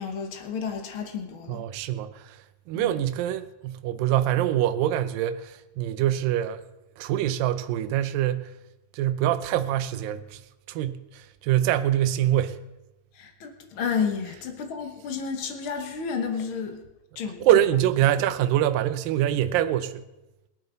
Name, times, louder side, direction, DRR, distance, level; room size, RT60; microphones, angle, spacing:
voice 1, 0.0-1.7 2.7-3.0 13.1-16.8 17.1-17.4, left 6 dB, 85° left, 1.1 m, -31 dB
voice 2, 1.5-2.4 2.7-6.6 7.0-8.5 8.9-10.4 10.7-12.6 17.4-20.1, right 12 dB, 80° right, 2.2 m, -24 dB
18.5 x 13.0 x 4.0 m
omnidirectional pair, 4.3 m